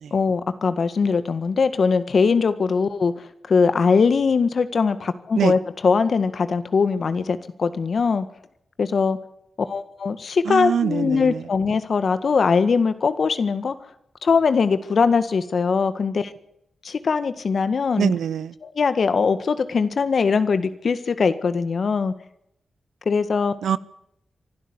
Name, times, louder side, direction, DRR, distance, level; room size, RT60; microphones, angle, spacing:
voice 1, 0.1-8.2 8.8-9.2 9.6-13.7 14.2-16.3 16.8-18.1 18.6-22.1 23.0-23.5, left 5 dB, 65° left, 11 dB, 1.8 m, -21 dB
voice 2, 10.4-11.5 18.0-18.5 23.6-23.8, right 8 dB, 80° right, 17 dB, 0.8 m, -24 dB
25.5 x 12.5 x 9.9 m, 0.79 s
supercardioid pair, 40°, 0 cm